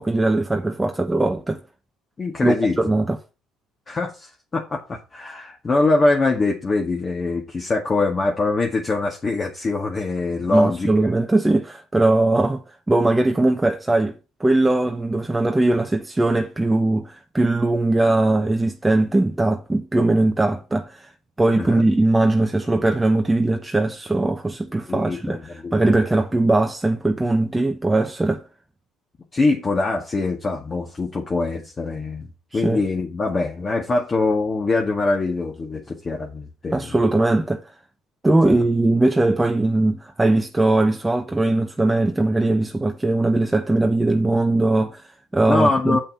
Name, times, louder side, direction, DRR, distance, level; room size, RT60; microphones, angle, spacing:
voice 1, 0.0-1.6 2.4-3.2 10.5-21.1 21.4-28.4 32.5-32.8 36.7-37.6 38.2-46.0, right 2 dB, 15° right, 0.9 m, -20 dB
voice 2, 2.2-2.8 3.9-10.9 21.5-21.8 24.9-26.0 29.3-32.3 32.5-36.9 38.5-38.6 45.4-46.0, left 3 dB, 30° left, 1.7 m, -23 dB
7.1 x 5.5 x 5.6 m
supercardioid pair, 80°, 0 cm